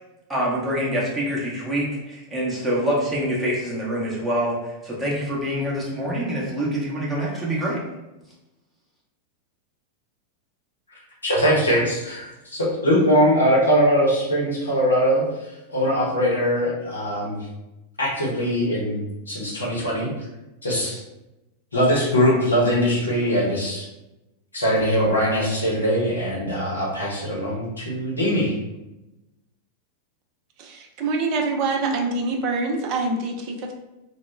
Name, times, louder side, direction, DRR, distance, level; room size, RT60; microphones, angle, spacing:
voice 1, 0.3-7.8, equal, 10° right, -6 dB, 0.7 m, -25 dB
voice 2, 11.2-17.4 18.0-19.0 19.3-20.1 20.6-21.0 21.7-23.9 24.5-28.6, equal, 75° left, -4 dB, 0.8 m, -21 dB
voice 3, 30.6-33.7, right 3 dB, 40° right, 3 dB, 0.4 m, -25 dB
2.1 x 2.1 x 3.1 m, 0.97 s
figure-of-eight pair, 90°, 0 cm